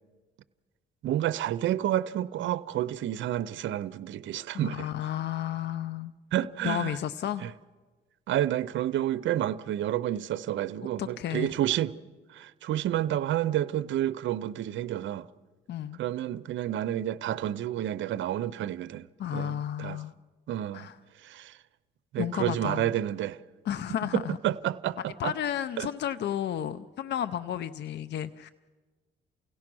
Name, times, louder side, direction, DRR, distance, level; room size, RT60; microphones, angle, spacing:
voice 1, 1.0-4.9 6.3-7.0 7.4-7.5 8.3-11.9 12.3-15.3 16.0-19.1 19.3-20.0 20.5-20.9 21.2-21.6 22.1-23.4 24.1-25.3 25.8-25.9, right 12 dB, 70° right, 0.6 m, -30 dB
voice 2, 4.5-6.1 6.6-7.4 11.0-11.5 15.7-16.0 19.2-20.1 20.7-21.0 22.2-22.9 23.6-24.4 25.2-28.5, left 10 dB, 60° left, 0.6 m, -32 dB
29.0 x 17.0 x 6.1 m
cardioid pair, 90°, 20 cm